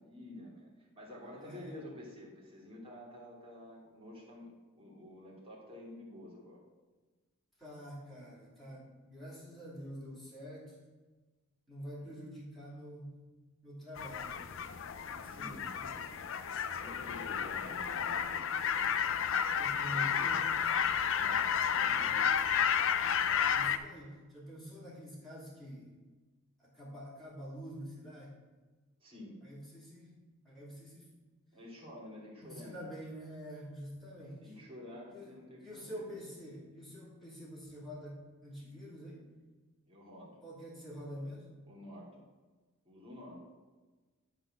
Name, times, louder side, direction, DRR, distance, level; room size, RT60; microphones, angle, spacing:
voice 1, 0.0-4.5 4.8-6.6 12.0-12.3 15.2-15.6 16.5-18.7 19.6-20.4 21.1-22.3 29.0-29.3 31.5-32.8 34.4-36.2 39.9-40.4 41.7-42.3 42.8-43.4, left 1 dB, 25° right, -4 dB, 2.6 m, -50 dB
voice 2, 1.4-1.8 7.6-10.8 11.7-13.1 13.6-14.8 15.1-16.2 19.6-20.6 21.8-22.3 23.5-25.9 26.6-28.4 29.4-30.1 30.4-31.1 32.4-34.5 35.1-35.3 35.6-39.2 40.4-41.5, equal, ahead, -8 dB, 2.6 m, -47 dB
sound 1, 14.0-23.8, left 7 dB, 65° left, 0.5 m, -32 dB
11.5 x 4.0 x 6.4 m, 1.3 s
head